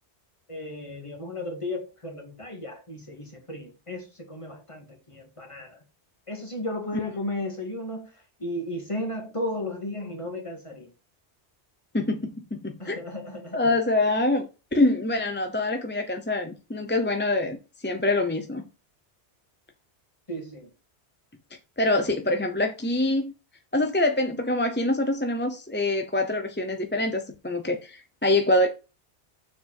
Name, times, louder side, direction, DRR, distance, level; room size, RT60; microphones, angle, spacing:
voice 1, 0.5-5.8 6.3-8.1 8.4-10.9 12.8-13.7 20.3-20.7, left 1 dB, 30° left, 2.0 m, -34 dB
voice 2, 11.9-13.0 13.5-17.6 17.8-18.6 21.8-23.3 23.7-28.7, left 2 dB, 10° left, 0.6 m, -25 dB
6.9 x 4.6 x 4.7 m
omnidirectional pair, 1.2 m